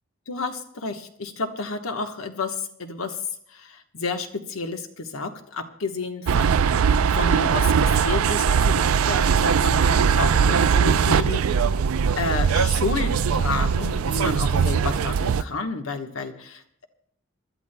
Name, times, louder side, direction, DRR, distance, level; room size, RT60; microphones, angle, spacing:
voice 1, 0.3-3.2 3.5-11.4 12.2-16.6, left 3 dB, 80° left, 6 dB, 1.2 m, -31 dB
sound 1, 6.3-15.4, right 6 dB, 85° right, 0.4 m, -20 dB
28.0 x 12.5 x 2.2 m, 0.68 s
head